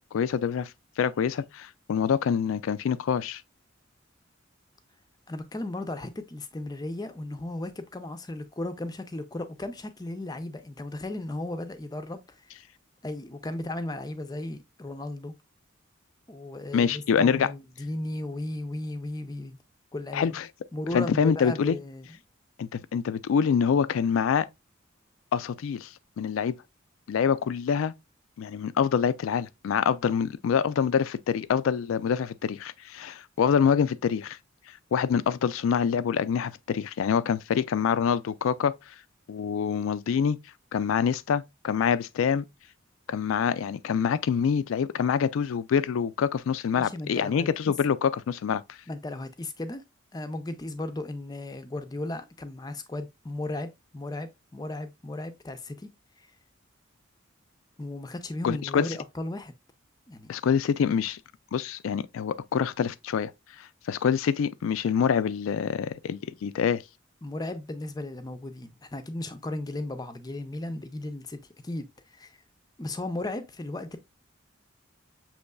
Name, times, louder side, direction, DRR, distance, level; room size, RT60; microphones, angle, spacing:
voice 1, 0.1-0.7 1.0-3.4 16.7-17.5 20.1-20.5 20.9-21.8 22.6-24.5 25.3-25.9 26.2-26.5 27.1-27.9 28.4-34.4 34.9-38.8 39.3-40.4 40.7-42.4 43.1-48.6 58.4-59.0 60.3-61.2 61.5-63.3 63.9-66.8, left 7 dB, 85° left, 0.3 m, -26 dB
voice 2, 5.3-12.5 13.0-15.4 16.3-19.6 19.9-20.4 20.7-22.1 46.8-47.7 48.9-49.8 50.1-55.9 57.8-59.5 60.1-60.3 67.2-71.4 71.6-72.4 72.8-74.0, left 1 dB, 20° left, 0.4 m, -35 dB
6.5 x 3.0 x 2.2 m
head